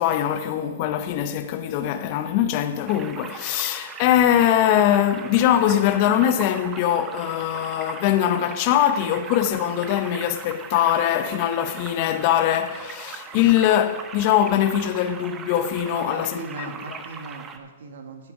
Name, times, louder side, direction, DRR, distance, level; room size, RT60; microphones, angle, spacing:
voice 1, 0.0-16.4, left 11 dB, 40° left, 0.7 m, -22 dB
sound 1, 2.9-17.6, right 6 dB, 20° right, 0.8 m, -39 dB
voice 2, 15.9-18.3, right 3 dB, 65° right, 1.6 m, -38 dB
9.6 x 8.6 x 5.2 m
hypercardioid pair, 135°, 0 cm